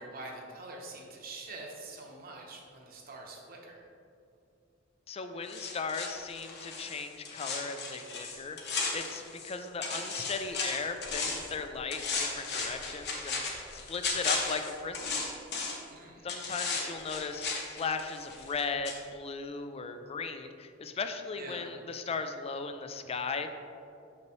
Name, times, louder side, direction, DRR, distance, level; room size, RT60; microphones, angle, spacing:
voice 1, 0.0-3.8 15.9-16.3 21.4-21.7, right 2 dB, 50° right, -1 dB, 1.0 m, -45 dB
voice 2, 5.1-15.1 16.2-23.5, left 4 dB, 30° left, 7 dB, 0.4 m, -37 dB
sound 1, 5.5-9.5 9.8-11.5 11.9-15.9 16.3-18.6 18.8-19.0, left 4 dB, 60° left, 1.0 m, -35 dB
6.6 x 5.7 x 3.1 m, 2.6 s
head